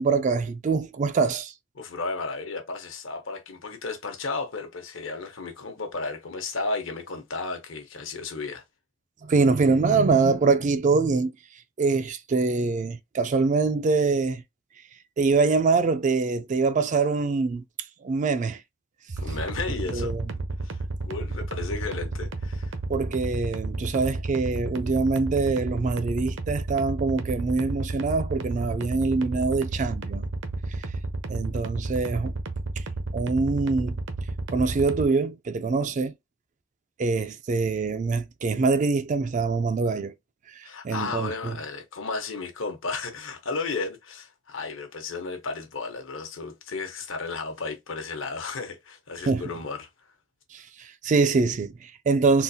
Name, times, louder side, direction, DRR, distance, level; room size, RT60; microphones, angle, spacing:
voice 1, 0.0-1.5 9.2-11.3 11.8-14.4 15.2-17.6 18.0-18.6 19.9-20.2 22.9-30.3 30.7-30.8 31.3-32.3 32.8-32.9 33.1-34.0 34.5-36.1 37.0-40.1 40.5-41.6 49.3-49.4 50.5-52.4, right 4 dB, 40° right, 0.3 m, -24 dB
voice 2, 1.8-8.6 19.2-20.1 20.6-22.7 40.6-49.9, left 3 dB, 75° left, 1.0 m, -33 dB
sound 1, 19.1-35.1, right 2 dB, 65° right, 0.7 m, -31 dB
3.8 x 2.3 x 2.7 m
head